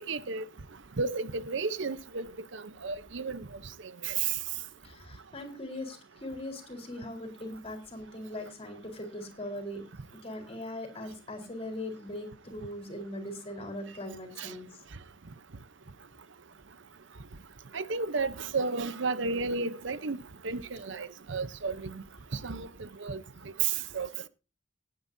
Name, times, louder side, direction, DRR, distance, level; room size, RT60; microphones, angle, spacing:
voice 1, 0.1-0.4 1.0-2.3 2.5-3.5 4.0-4.4 14.4-14.5 17.7-20.2 20.4-22.0 22.3-23.2 23.6-24.1, right 4 dB, 70° right, 0.8 m, -32 dB
voice 2, 4.8-9.8 10.2-14.8, left 1 dB, 30° left, 4.2 m, -40 dB
19.0 x 9.4 x 2.7 m
head